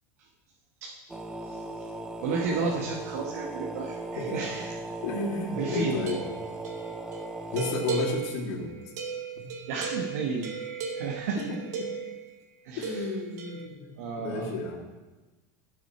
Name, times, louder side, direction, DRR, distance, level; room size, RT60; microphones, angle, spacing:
sound 1, 1.1-7.7, right 2 dB, 5° right, 0.5 m, -38 dB
voice 1, 1.4-1.9 2.2-4.7 5.6-6.0 9.7-10.5 10.9-11.4 12.6-13.0 14.0-14.5, right 4 dB, 70° right, -1 dB, 1.6 m, -32 dB
voice 2, 5.0-6.2 7.5-8.7 9.4-9.5 11.5-11.9 12.8-14.8, left 3 dB, 50° left, -1 dB, 2.6 m, -32 dB
sound 2, 6.0-12.3 12.8-13.7, right 5 dB, 85° right, 1.8 m, -36 dB
18.5 x 6.8 x 4.4 m, 1.2 s
supercardioid pair, 175°, 9 cm